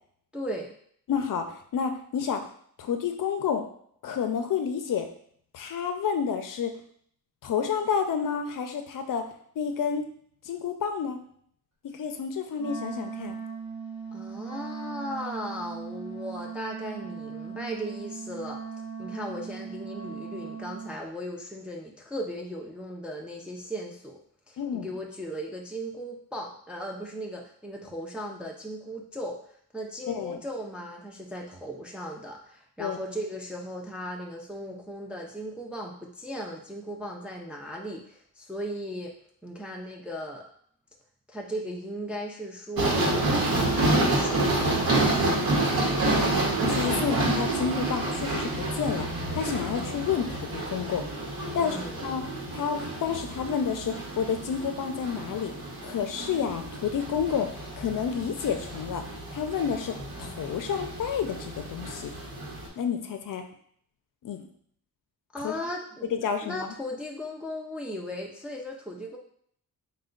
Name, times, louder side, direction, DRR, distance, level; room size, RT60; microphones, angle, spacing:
voice 1, 0.3-0.7 14.1-18.6 19.0-24.2 24.5-29.4 29.7-39.1 39.4-40.4 41.3-44.8 51.6-52.0 65.3-69.2, equal, 5° right, 0 dB, 0.3 m, -37 dB
voice 2, 1.1-2.4 2.8-3.7 4.0-5.1 5.5-6.7 7.4-9.3 9.6-10.1 10.5-11.2 11.8-13.4 24.6-24.9 30.1-30.4 32.8-33.0 45.8-51.0 51.5-52.2 52.5-55.5 55.8-59.0 59.3-59.9 60.2-62.1 62.8-63.4 64.2-64.5 65.4-65.5 66.1-66.7, left 7 dB, 60° left, 7 dB, 0.5 m, -30 dB
Wind instrument woodwind instrument, 12.5-21.0, right 5 dB, 50° right, 1.2 m, -38 dB
sound 1, 42.8-62.7, right 2 dB, 70° right, 1.0 m, -29 dB
4.2 x 2.2 x 3.7 m, 0.62 s
wide cardioid pair, 170°, 37 cm